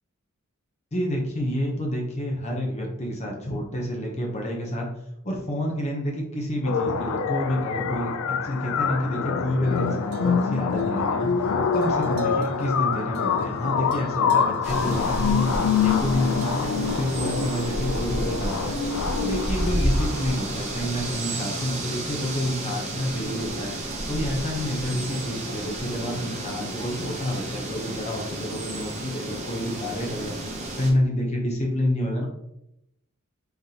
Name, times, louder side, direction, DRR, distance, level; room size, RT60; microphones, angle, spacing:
voice 1, 0.9-4.9 5.2-11.3 11.7-15.5 15.8-18.8 19.2-23.7 24.1-30.3 30.8-32.3, equal, 30° left, 0 dB, 0.7 m, -28 dB
sound 1, 6.6-20.6, left 6 dB, 70° left, 0.3 m, -26 dB
sound 2, 9.6-27.6, right 3 dB, 80° right, 0.5 m, -45 dB
sound 3, 14.6-30.9, right 1 dB, 35° right, 0.8 m, -31 dB
3.8 x 3.3 x 2.8 m, 0.80 s
head